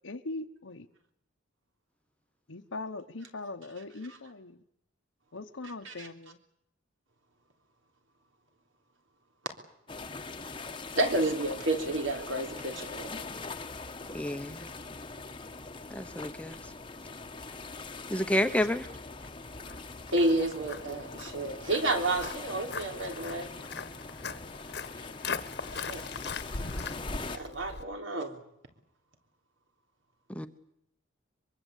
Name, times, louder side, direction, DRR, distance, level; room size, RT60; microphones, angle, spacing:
voice 1, 0.0-0.9 2.5-4.6 5.3-6.4, left 2 dB, 75° left, 2 dB, 1.1 m, -40 dB
sound 1, 9.9-27.4, left 3 dB, 25° left, 1.1 m, -42 dB
voice 2, 11.0-13.3 20.1-23.5 25.7-26.0 27.3-28.4, right 2 dB, 70° right, 5 dB, 3.6 m, -30 dB
voice 3, 14.1-14.7 15.9-16.6 18.1-18.9 30.3-30.5, left 1 dB, 5° left, 9 dB, 0.9 m, -29 dB
Walk footsteps, 19.2-27.8, left 4 dB, 55° left, 1.3 m, -40 dB
23.5 x 23.5 x 8.3 m, 0.76 s
head